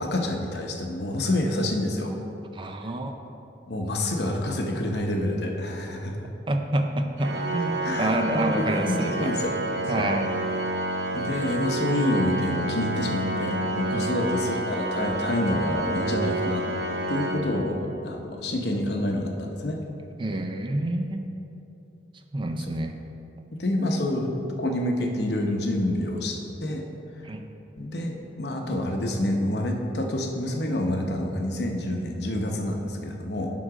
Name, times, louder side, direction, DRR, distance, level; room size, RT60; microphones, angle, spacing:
voice 1, 0.0-2.1 3.7-6.3 7.8-9.6 10.0-10.1 11.1-16.6 17.1-19.8 22.6-22.7 23.6-26.8 27.8-33.5, left 1 dB, 65° left, 2 dB, 0.9 m, -28 dB
voice 2, 2.5-3.1 6.5-9.3 9.9-10.3 13.9-14.2 20.2-21.2 22.3-22.9 27.2-27.4, right 1 dB, 30° right, 5 dB, 0.5 m, -28 dB
Organ, 7.2-18.1, right 1 dB, 70° right, 0.7 m, -29 dB
11.0 x 3.9 x 4.9 m, 2.8 s
head